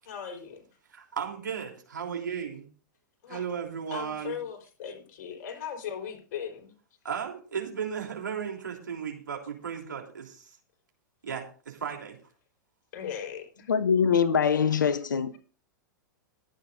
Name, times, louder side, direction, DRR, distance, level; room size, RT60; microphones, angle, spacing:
voice 1, 0.1-0.6 3.2-3.4 3.9-6.7 12.9-13.7, left 8 dB, 50° left, 4.2 m, -38 dB
voice 2, 0.9-2.7 3.3-4.4 7.0-10.5 11.2-12.2, right 7 dB, 70° right, 3.3 m, -35 dB
voice 3, 13.7-15.4, left 7 dB, 70° left, 0.8 m, -23 dB
22.0 x 9.0 x 2.6 m
figure-of-eight pair, 100°, 11 cm